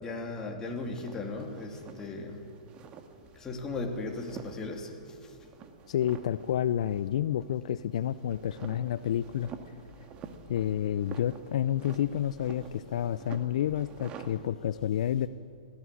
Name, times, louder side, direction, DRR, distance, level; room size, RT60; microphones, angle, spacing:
voice 1, 0.0-2.4 3.4-4.9, left 3 dB, 15° left, 1 dB, 3.0 m, -36 dB
sound 1, 0.6-14.5, right 6 dB, 30° right, 1.7 m, -49 dB
voice 2, 5.9-9.5 10.5-15.3, left 10 dB, 60° left, 15 dB, 0.5 m, -29 dB
18.5 x 14.5 x 9.9 m, 2.4 s
hypercardioid pair, 125°, 4 cm